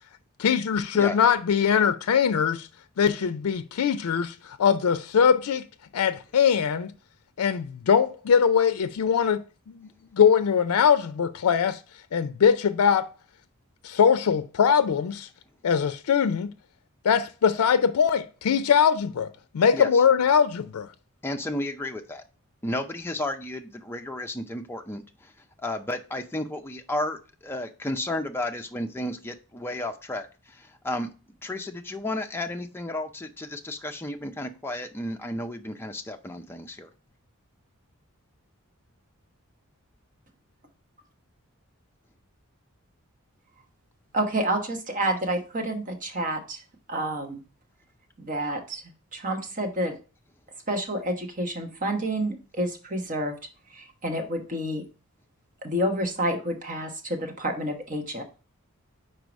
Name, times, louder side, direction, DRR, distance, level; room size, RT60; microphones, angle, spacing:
voice 1, 0.4-2.7 3.0-5.6 5.9-6.9 7.4-9.4 9.7-9.8 10.1-11.8 12.1-13.1 13.8-15.3 15.6-16.5 17.0-20.9, left 7 dB, 85° left, 0.4 m, -22 dB
voice 2, 21.2-22.2 22.6-25.3 25.6-31.1 31.4-36.9, left 1 dB, 10° left, 0.5 m, -33 dB
voice 3, 44.1-46.6 46.9-47.4 48.2-48.8 49.1-49.9 50.7-53.3 53.7-54.8 55.6-58.2, right 1 dB, 35° right, 1.2 m, -29 dB
4.7 x 4.6 x 5.1 m
head